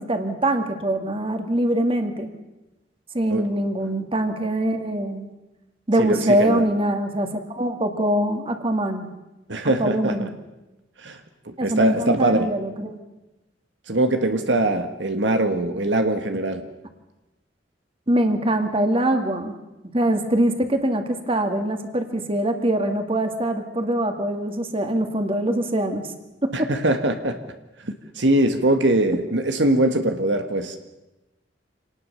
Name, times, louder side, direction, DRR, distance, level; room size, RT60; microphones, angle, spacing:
voice 1, 0.0-2.3 3.1-5.4 5.9-9.1 9.8-10.3 11.6-13.0 18.1-19.6 19.9-26.0 26.4-26.7, right 1 dB, 30° right, 6 dB, 2.3 m, -23 dB
voice 2, 6.0-6.6 9.5-10.3 11.0-11.2 11.5-12.5 13.9-16.6 26.5-27.4 27.8-30.8, right 1 dB, 75° right, 7 dB, 1.6 m, -22 dB
26.5 x 19.5 x 6.9 m, 1.0 s
head